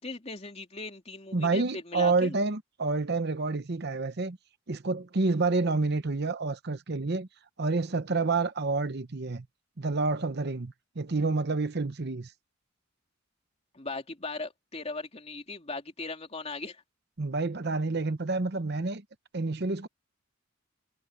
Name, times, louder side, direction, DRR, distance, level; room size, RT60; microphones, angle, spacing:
voice 1, 0.0-2.4 13.7-16.8, left 3 dB, 30° left, 3.0 m, -38 dB
voice 2, 1.3-4.4 4.7-7.3 7.6-9.5 9.8-12.3 17.2-19.0 19.3-19.9, right 3 dB, 55° right, 0.9 m, -28 dB
head